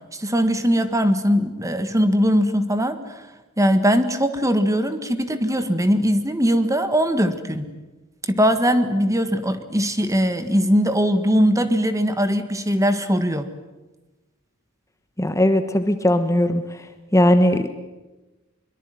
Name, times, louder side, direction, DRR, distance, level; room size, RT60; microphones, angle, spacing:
voice 1, 0.1-3.2 3.6-7.7 8.3-13.5, equal, 15° right, 9 dB, 1.7 m, -20 dB
voice 2, 15.2-16.6 17.1-17.7, left 1 dB, 15° left, 8 dB, 1.2 m, -18 dB
23.0 x 23.0 x 9.4 m, 1.1 s
head